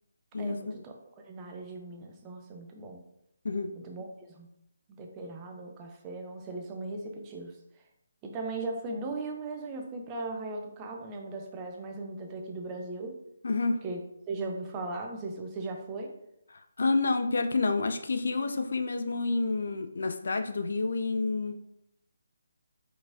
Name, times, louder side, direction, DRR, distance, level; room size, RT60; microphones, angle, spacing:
voice 1, 0.4-3.0 3.8-4.1 4.4-4.5 4.9-7.5 8.2-13.2 13.8-14.0 14.3-16.1, right 2 dB, 20° right, 2 dB, 0.6 m, -38 dB
voice 2, 13.4-13.8 16.5-21.5, left 3 dB, 55° left, 7 dB, 0.4 m, -29 dB
4.6 x 3.9 x 2.6 m, 0.78 s
figure-of-eight pair, 145°, 0 cm